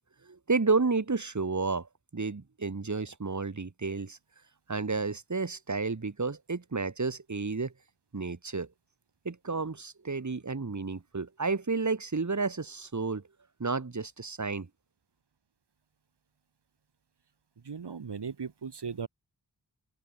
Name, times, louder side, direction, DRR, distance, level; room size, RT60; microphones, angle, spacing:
voice 1, 0.2-4.2 4.7-7.7 8.1-8.7 9.3-13.2 13.6-14.7, right 4 dB, 45° right, 2.0 m, -31 dB
voice 2, 17.7-19.1, right 6 dB, 85° right, 1.7 m, -37 dB
open air
wide cardioid pair, 50°, 39 cm